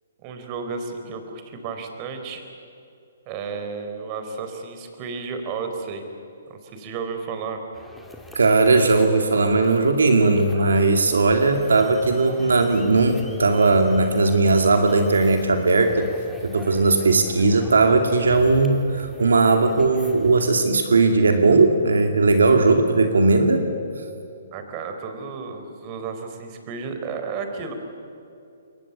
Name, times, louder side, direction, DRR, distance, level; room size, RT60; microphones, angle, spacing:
voice 1, 0.2-2.5 3.3-6.0 6.5-7.6 24.5-27.7, right 5 dB, 30° right, 6 dB, 4.1 m, -32 dB
sound 1, 7.7-20.5, left 2 dB, 5° left, 2.3 m, -42 dB
voice 2, 8.3-16.1 16.4-23.7, right 3 dB, 80° right, 6 dB, 2.4 m, -18 dB
28.0 x 22.5 x 8.5 m, 2.7 s
hypercardioid pair, 135°, 0 cm